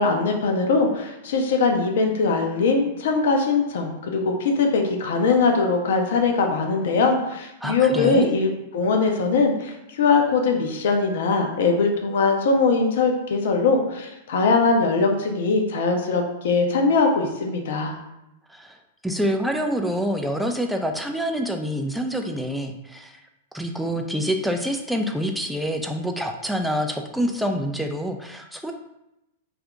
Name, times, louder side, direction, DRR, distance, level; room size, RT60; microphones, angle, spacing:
voice 1, 0.0-17.9, left 4 dB, 60° left, 3 dB, 0.6 m, -21 dB
voice 2, 7.6-8.3 18.5-18.8 19.0-23.1 23.5-28.7, equal, ahead, 3 dB, 0.4 m, -26 dB
2.7 x 2.5 x 3.4 m, 0.89 s
figure-of-eight pair, 100°, 0 cm